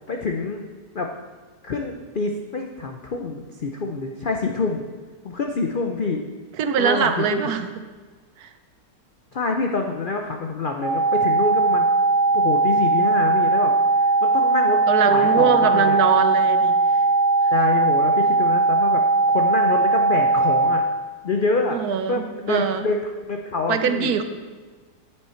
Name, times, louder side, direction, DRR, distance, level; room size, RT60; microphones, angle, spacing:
voice 1, 0.1-0.7 0.9-1.1 1.6-4.8 5.2-6.2 6.8-7.5 9.3-11.8 12.3-14.8 15.1-16.0 17.5-20.8 21.2-21.8 22.1-24.1, left 3 dB, 90° left, 3 dB, 0.4 m, -26 dB
voice 2, 6.6-7.7 8.4-8.5 14.9-16.8 21.7-22.9 23.7-24.2, right 7 dB, 70° right, 9 dB, 1.1 m, -22 dB
sound 1, 10.8-20.8, right 3 dB, 85° right, 2.1 m, -19 dB
9.7 x 7.8 x 4.4 m, 1.4 s
omnidirectional pair, 1.8 m